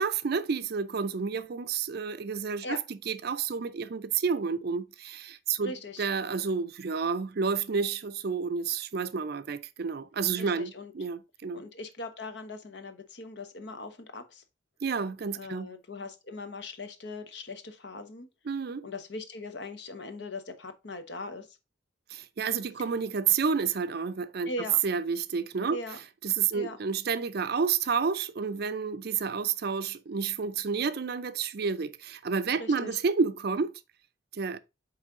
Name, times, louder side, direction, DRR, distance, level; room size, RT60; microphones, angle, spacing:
voice 1, 0.0-5.7 6.0-11.6 14.8-15.7 18.5-18.8 22.1-24.5 24.8-25.8 26.2-33.7 34.3-34.6, right 5 dB, 55° right, 0.5 m, -30 dB
voice 2, 5.6-6.1 10.4-10.9 11.5-14.4 15.4-18.3 18.8-21.5 24.4-24.8 25.7-26.0 26.5-26.8 32.6-33.0, left 2 dB, 60° left, 1.0 m, -40 dB
8.3 x 3.2 x 3.6 m
head